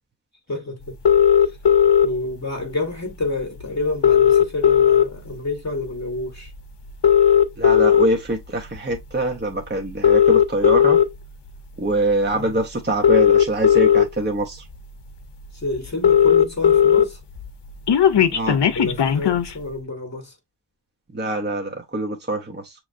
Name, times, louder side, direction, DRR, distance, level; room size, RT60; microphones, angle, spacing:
voice 1, 0.5-1.0 1.4-1.6 2.0-6.5 12.3-12.6 15.5-17.2 18.7-20.4, left 2 dB, 40° left, 0.9 m, -29 dB
sound 1, 1.1-2.1 3.2-3.3 3.6-3.7 3.9-5.3 5.8-6.0 6.9-8.0 8.8-9.0 9.9-11.1 12.3-12.4 12.9-14.0 14.7-14.8 15.1-15.2 15.5-15.6 15.7-17.0 17.4-19.5, left 8 dB, 75° left, 0.7 m, -15 dB
voice 2, 7.6-11.0 11.8-14.6 18.3-18.6 21.1-22.7, right 1 dB, 25° right, 0.7 m, -24 dB
6.2 x 3.1 x 2.5 m
wide cardioid pair, 85°, 42 cm